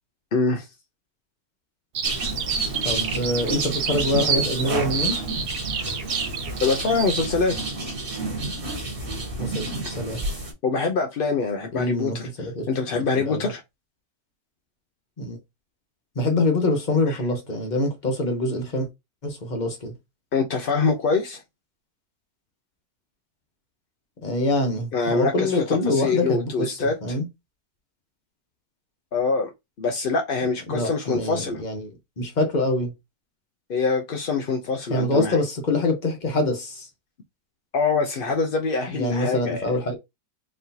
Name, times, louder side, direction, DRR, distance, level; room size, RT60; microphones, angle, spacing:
voice 1, 0.3-0.7 6.6-7.5 10.6-12.3 12.7-13.6 17.1-17.2 20.3-21.4 24.9-27.2 29.1-29.5 29.8-31.6 33.7-35.4 37.7-39.7, left 4 dB, 55° left, 0.6 m, -24 dB
Bird vocalization bird call bird song, 1.9-7.2, right 6 dB, 80° right, 1.4 m, -29 dB
sound 1, 2.0-10.5, right 2 dB, 40° right, 1.5 m, -30 dB
voice 2, 2.8-5.2 9.4-10.2 11.7-12.7 13.1-13.5 15.2-15.4 16.1-18.9 19.2-19.9 24.2-27.3 30.7-32.9 34.9-36.9 38.9-39.9, left 2 dB, 35° left, 1.0 m, -25 dB
4.2 x 3.2 x 2.7 m
omnidirectional pair, 1.6 m